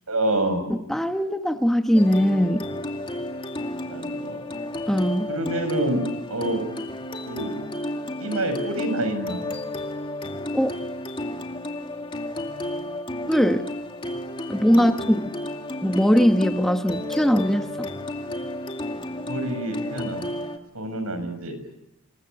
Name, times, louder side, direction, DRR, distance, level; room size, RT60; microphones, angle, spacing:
voice 1, 0.1-0.7 3.9-4.6 5.3-6.0 6.3-6.6 7.3-7.5 8.2-9.5 14.7-14.9 19.3-20.3 20.7-21.6, right 1 dB, 85° right, 9 dB, 6.8 m, -27 dB
voice 2, 0.7-2.7 4.9-5.3 10.5-10.7 13.3-13.7 14.5-15.3 15.8-17.9, equal, ahead, 7 dB, 1.1 m, -21 dB
sound 1, 1.9-20.6, left 1 dB, 25° left, 2.2 m, -32 dB
27.5 x 21.5 x 9.7 m, 0.85 s
head